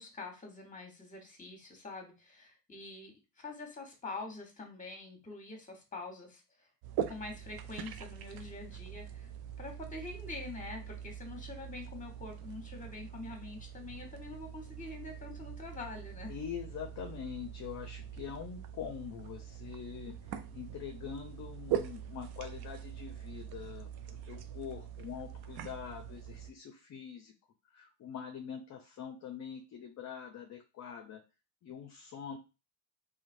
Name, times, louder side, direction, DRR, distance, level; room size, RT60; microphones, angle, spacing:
voice 1, 0.0-6.7 7.1-9.3 9.6-16.3, left 3 dB, 15° left, 2 dB, 1.2 m, -45 dB
sound 1, 6.8-26.5, right 10 dB, 55° right, 0.5 m, -43 dB
voice 2, 16.3-27.3 27.7-31.2 31.6-32.4, left 8 dB, 40° left, 4 dB, 0.6 m, -44 dB
3.0 x 2.2 x 2.6 m, 0.28 s
hypercardioid pair, 70°, 45 cm